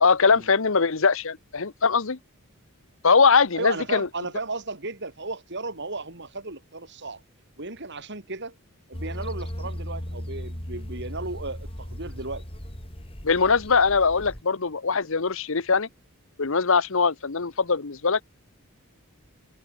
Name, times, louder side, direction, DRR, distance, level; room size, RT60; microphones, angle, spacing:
voice 1, 0.0-2.2 3.0-4.1 13.2-15.9 16.4-18.2, left 5 dB, 60° left, 1.0 m, -21 dB
voice 2, 3.5-7.2 7.6-8.5 8.9-12.4, right 3 dB, 50° right, 4.0 m, -35 dB
sound 1, 8.9-14.4, equal, 25° left, 3.9 m, -37 dB
head